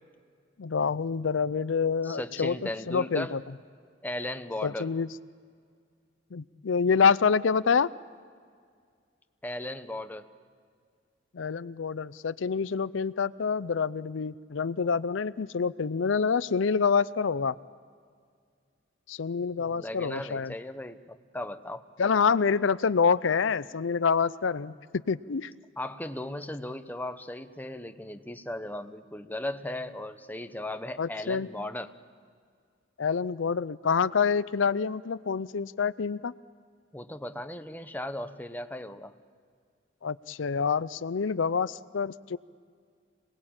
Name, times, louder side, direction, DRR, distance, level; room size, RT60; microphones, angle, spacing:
voice 1, 0.6-2.6 2.9-3.4 4.6-5.1 6.3-7.9 11.3-17.6 19.1-20.5 22.0-24.7 25.1-25.5 31.0-31.5 33.0-36.3 40.0-42.4, left 5 dB, 80° left, 17 dB, 0.5 m, -27 dB
voice 2, 2.0-3.4 4.0-4.9 9.4-10.3 19.6-21.8 25.8-31.9 36.9-39.1, left 1 dB, 10° left, 8 dB, 0.9 m, -37 dB
26.5 x 19.5 x 8.8 m, 2.1 s
head